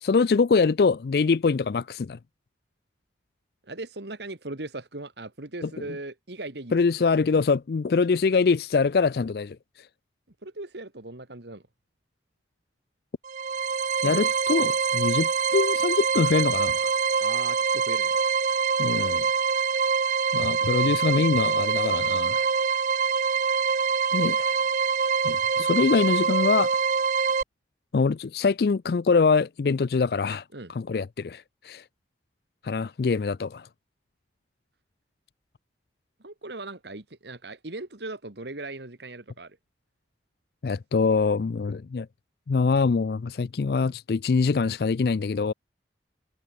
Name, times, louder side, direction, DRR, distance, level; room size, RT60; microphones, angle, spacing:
voice 1, 0.0-2.2 6.7-9.6 14.0-16.9 18.8-19.3 20.3-22.5 24.1-24.5 25.2-26.8 27.9-30.4 30.7-31.8 32.6-33.7 40.6-42.1 42.5-45.5, left 4 dB, 55° left, 0.4 m, -24 dB
voice 2, 3.6-6.7 10.4-11.6 14.0-14.4 17.2-18.2 30.5-30.7 36.2-39.6, right 2 dB, 70° right, 1.9 m, -38 dB
sound 1, 13.2-27.4, right 6 dB, 45° right, 0.5 m, -25 dB
head